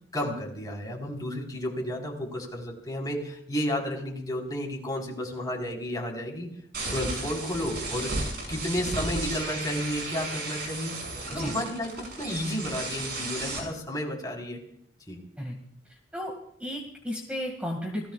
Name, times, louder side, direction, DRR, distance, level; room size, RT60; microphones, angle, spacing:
voice 1, 0.1-6.5 6.9-8.1 8.5-11.0 11.3-14.6 15.1-15.2, equal, 20° left, -1 dB, 4.3 m, -32 dB
sound 1, 6.7-13.6, right 2 dB, 60° right, 6.8 m, -34 dB
voice 2, 16.6-18.1, equal, 5° right, 0 dB, 2.1 m, -34 dB
29.0 x 17.5 x 2.4 m, 0.65 s
head